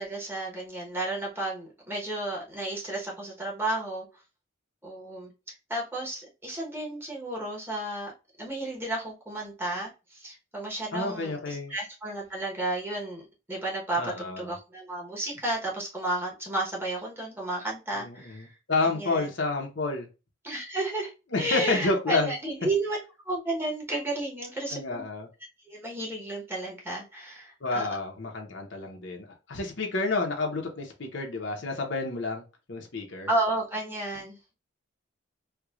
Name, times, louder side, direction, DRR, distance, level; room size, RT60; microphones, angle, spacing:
voice 1, 0.0-4.1 4.8-8.1 8.4-13.2 13.5-18.5 18.8-19.3 20.4-21.1 21.4-23.0 23.2-25.0 25.7-27.9 33.3-34.4, right 2 dB, 10° right, -3 dB, 1.1 m, -32 dB
voice 2, 10.9-11.7 14.0-14.5 17.9-20.1 21.3-22.3 24.7-25.3 27.6-32.4 32.7-33.3, left 3 dB, 65° left, 1 dB, 1.0 m, -30 dB
4.6 x 2.4 x 2.4 m, 0.29 s
head